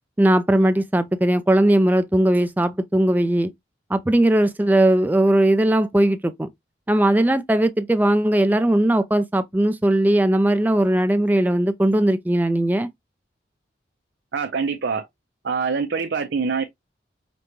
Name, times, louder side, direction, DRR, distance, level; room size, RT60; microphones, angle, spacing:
voice 1, 0.2-3.5 3.9-6.5 6.9-12.9, right 1 dB, 10° right, 0.3 m, -19 dB
voice 2, 14.3-15.1 15.4-16.6, right 5 dB, 70° right, 0.5 m, -24 dB
5.2 x 2.2 x 3.0 m
head